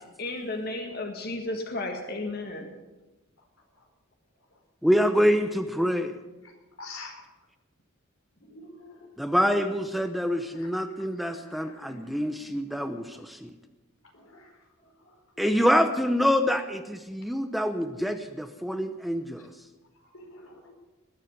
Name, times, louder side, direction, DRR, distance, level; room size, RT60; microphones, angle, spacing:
voice 1, 0.0-2.7, left 2 dB, 50° left, 3 dB, 1.9 m, -33 dB
voice 2, 4.8-6.2 9.2-13.5 15.4-19.4, equal, ahead, 7 dB, 0.8 m, -26 dB
voice 3, 6.8-7.2 8.4-9.1 10.5-10.7 11.3-12.3 12.7-13.0 14.1-14.5 15.0-15.1 20.1-20.7, left 2 dB, 85° left, 2 dB, 4.3 m, -46 dB
20.0 x 7.4 x 9.9 m, 1.1 s
head